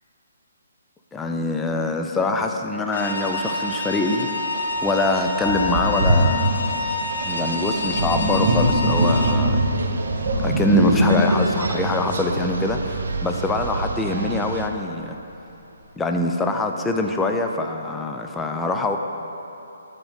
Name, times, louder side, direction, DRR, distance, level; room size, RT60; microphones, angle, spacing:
voice 1, 1.1-4.3 4.8-6.6 7.3-9.6 10.4-15.2 16.0-19.0, left 2 dB, 10° left, 4 dB, 0.3 m, -24 dB
sound 1, 2.9-9.3, left 2 dB, 70° left, 0.8 m, -27 dB
Sink (filling or washing), 4.8-4.9 5.5-12.8, right 1 dB, 45° right, 1.2 m, -22 dB
sound 2, 8.9-14.7, right 4 dB, 70° right, 0.4 m, -30 dB
8.6 x 3.7 x 4.0 m, 2.9 s
hypercardioid pair, 145°, 0 cm